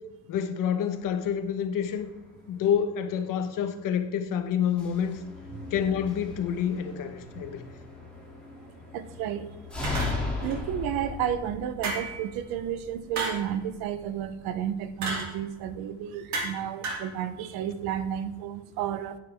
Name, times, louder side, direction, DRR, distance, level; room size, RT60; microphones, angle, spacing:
voice 1, 0.3-2.1 2.5-5.2 5.7-7.7, left 8 dB, 60° left, 9 dB, 1.1 m, -28 dB
sound 1, 1.0-18.4, left 3 dB, 5° left, 2.4 m, -40 dB
voice 2, 8.9-9.5 10.4-19.2, right 9 dB, 80° right, 12 dB, 0.9 m, -32 dB
sound 2, 9.8-10.6 11.8-12.3 13.2-13.5 15.0-15.3 16.3-16.6 16.8-17.1, right 3 dB, 50° right, 2.6 m, -32 dB
10.0 x 9.4 x 3.5 m, 1.1 s
cardioid pair, 135°, 36 cm